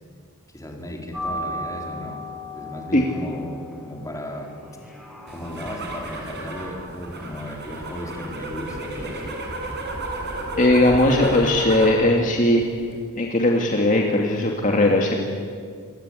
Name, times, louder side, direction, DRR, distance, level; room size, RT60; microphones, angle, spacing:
voice 1, 0.5-2.2 2.5-4.5 5.3-9.3, left 1 dB, 15° left, 1 dB, 4.2 m, -35 dB
sound 1, 1.1-9.3, left 1 dB, ahead, 6.6 m, -37 dB
sound 2, 5.3-12.0 12.4-12.9, right 2 dB, 50° right, 7.2 m, -33 dB
voice 2, 10.6-12.6 13.1-15.2, left 1 dB, 35° left, 0 dB, 2.4 m, -18 dB
27.5 x 22.0 x 9.9 m, 2.1 s
head